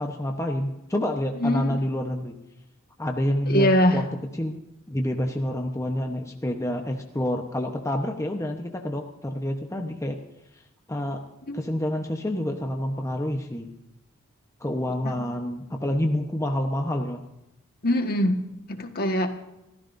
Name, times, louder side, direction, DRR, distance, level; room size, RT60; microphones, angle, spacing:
voice 1, 0.0-2.3 3.0-4.1 4.3-4.6 4.9-10.2 10.9-11.2 11.5-13.7 14.6-17.2, left 1 dB, 15° left, 3 dB, 1.0 m, -28 dB
voice 2, 1.4-1.8 3.5-4.0 11.5-11.6 15.0-15.1 17.8-18.4 18.7-19.3, equal, 45° left, 5 dB, 1.6 m, -22 dB
28.5 x 14.5 x 2.7 m, 0.91 s
head